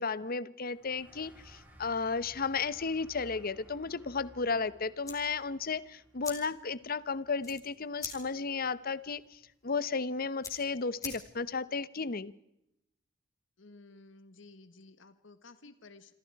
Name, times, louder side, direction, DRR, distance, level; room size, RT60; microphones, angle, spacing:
voice 1, 0.0-12.3, left 4 dB, 50° left, 0.9 m, -34 dB
sound 1, 0.7-7.8, equal, 10° right, 5.5 m, -58 dB
sound 2, 5.0-11.6, left 4 dB, 20° left, 4.1 m, -47 dB
voice 2, 13.6-16.1, left 3 dB, 70° left, 1.5 m, -54 dB
27.0 x 26.0 x 4.7 m
head